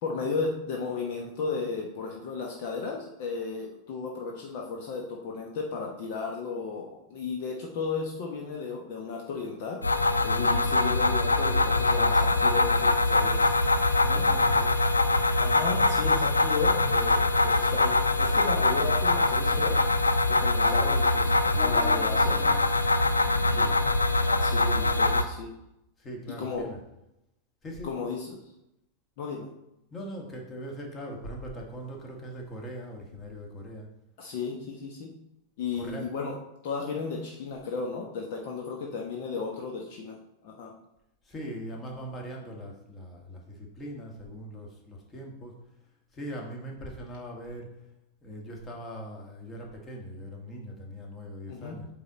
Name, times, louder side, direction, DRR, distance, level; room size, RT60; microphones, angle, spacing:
voice 1, 0.0-9.8 10.2-13.5 15.4-19.8 20.3-22.5 24.4-25.5 26.4-26.7 27.8-28.4 29.2-29.5 34.2-35.1 35.6-36.3 36.6-40.2 40.4-40.7 51.5-51.8, left 4 dB, 50° left, 0 dB, 1.0 m, -34 dB
sound 1, 9.8-25.2, left 2 dB, 80° left, 0.4 m, -23 dB
voice 2, 14.0-14.8 23.4-23.7 26.0-26.8 27.6-27.9 29.9-33.9 35.8-36.1 41.2-45.6 46.1-47.7 48.2-51.9, equal, 20° left, 0 dB, 1.7 m, -40 dB
sound 2, 20.6-21.1 21.5-22.7 23.1-23.2 23.6-23.9 24.2-25.0, right 1 dB, 5° right, 0.6 m, -42 dB
8.0 x 3.7 x 4.1 m, 0.85 s
figure-of-eight pair, 90°, 0 cm